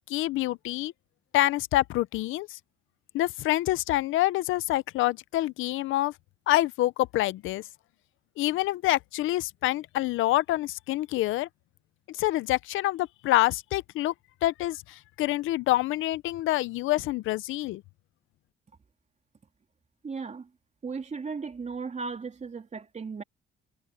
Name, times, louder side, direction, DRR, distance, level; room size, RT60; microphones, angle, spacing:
voice 1, 0.1-0.9 1.3-2.6 3.1-6.1 6.5-7.6 8.4-11.5 12.1-14.1 14.4-17.8, left 16 dB, 85° left, 0.6 m, -26 dB
voice 2, 20.0-20.5 20.8-23.2, right 5 dB, 35° right, 3.3 m, -36 dB
cardioid pair, 90°, 20 cm